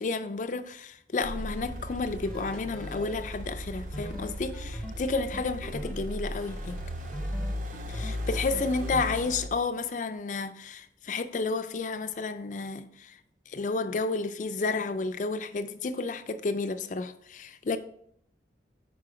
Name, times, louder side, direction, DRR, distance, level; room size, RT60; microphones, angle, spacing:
voice 1, 0.0-6.8 7.9-13.2 13.5-17.8, left 3 dB, 45° left, 0.4 m, -31 dB
sound 1, 1.2-9.5, equal, 45° right, 0.5 m, -37 dB
sound 2, 2.2-3.1 3.9-5.9 6.3-9.3, left 1 dB, 5° left, 0.7 m, -40 dB
4.9 x 4.8 x 4.9 m
head